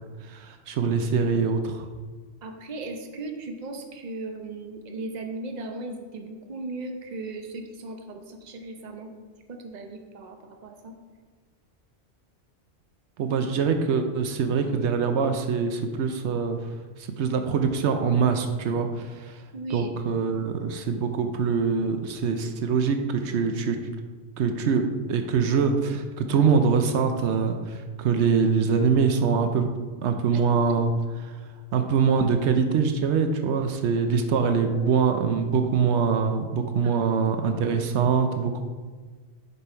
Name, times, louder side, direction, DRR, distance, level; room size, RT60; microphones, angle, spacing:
voice 1, 0.2-1.9 13.2-16.7 17.0-19.4 19.7-23.8 24.4-29.7 30.0-30.9 31.2-31.4 31.7-38.6, right 5 dB, 80° right, 6 dB, 0.9 m, -24 dB
voice 2, 2.4-9.1 9.5-10.9 19.5-19.9 26.5-26.7 30.3-30.4 34.7-35.0 36.8-37.2 38.4-38.6, right 2 dB, 45° right, 4 dB, 0.9 m, -37 dB
6.8 x 5.5 x 4.4 m, 1.4 s
omnidirectional pair, 1.1 m